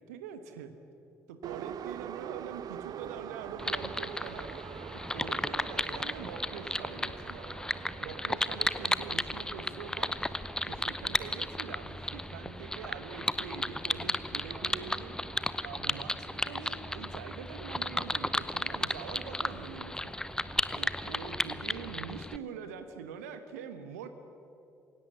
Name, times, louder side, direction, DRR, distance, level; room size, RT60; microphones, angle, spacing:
voice 1, 0.1-0.8 1.3-4.5 4.9-7.6 8.0-10.2 10.7-15.2 15.6-20.2 20.7-24.1, right 6 dB, 75° right, 9 dB, 1.2 m, -44 dB
Subway metro underground, 1.4-21.2, right 10 dB, 50° right, 0.6 m, -47 dB
sound 1, 3.6-22.4, left 1 dB, 10° left, 0.8 m, -34 dB
sound 2, 4.1-7.3 7.6-7.9 8.1-10.4 10.7-10.9 11.2-14.1 14.3-15.1 15.4-15.6 15.9-17.2 17.5-18.2 18.5-21.2, right 1 dB, 10° right, 6.9 m, -60 dB
27.0 x 17.0 x 8.2 m, 2.8 s
figure-of-eight pair, 45°, 8 cm